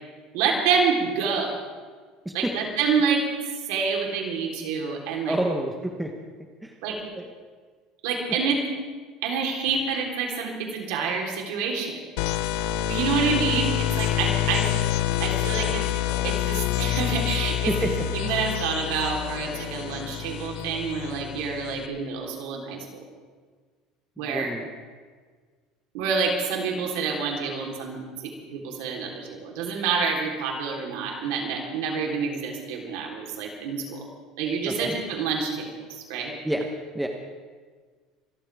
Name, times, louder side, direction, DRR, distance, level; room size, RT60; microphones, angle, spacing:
voice 1, 0.3-1.5 2.3-3.3 3.7-5.4 6.8-7.0 8.0-8.6 9.2-12.0 12.9-14.7 15.2-15.8 16.2-23.0 24.2-24.5 25.9-34.0 34.4-36.3, right 5 dB, 75° right, 0 dB, 3.6 m, -27 dB
voice 2, 5.3-6.1 6.6-6.7 7.2-7.3 13.1-13.2 15.6-15.7 16.1-16.2 17.7-17.9 24.2-24.7 34.7-34.9 36.4-36.7 36.9-37.1, right 1 dB, 5° right, 2 dB, 0.9 m, -29 dB
sound 1, 12.2-21.9, left 12 dB, 65° left, 0.8 m, -27 dB
26.0 x 14.0 x 3.5 m, 1.5 s
cardioid pair, 180°, 0 cm